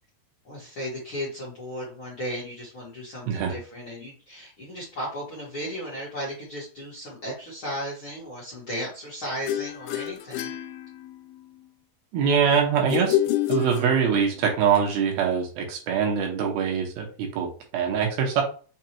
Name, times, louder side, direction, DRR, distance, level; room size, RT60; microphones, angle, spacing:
voice 1, 0.4-10.5, equal, 55° left, -7 dB, 1.5 m, -35 dB
sound 1, 9.5-11.4 12.9-14.4, left 13 dB, 90° left, 1.8 m, -28 dB
voice 2, 12.1-13.2 13.5-18.4, right 7 dB, 80° right, 1 dB, 2.8 m, -23 dB
6.3 x 2.4 x 2.9 m, 0.38 s
omnidirectional pair, 4.3 m